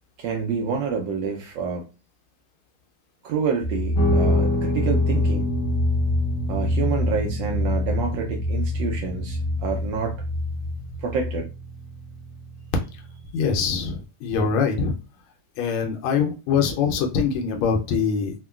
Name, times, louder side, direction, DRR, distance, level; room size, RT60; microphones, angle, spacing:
voice 1, 0.2-1.9 3.2-5.5 6.5-10.2 11.0-11.5, right 5 dB, 75° right, 1 dB, 1.1 m, -28 dB
sound 1, 3.6-11.4, left 2 dB, 50° right, 0.6 m, -25 dB
Guitar, 3.9-13.2, right 1 dB, 55° left, 1.0 m, -30 dB
voice 2, 13.3-15.0 15.6-18.3, left 6 dB, 80° left, 3 dB, 1.4 m, -23 dB
3.6 x 2.1 x 2.2 m, 0.31 s
omnidirectional pair, 2.3 m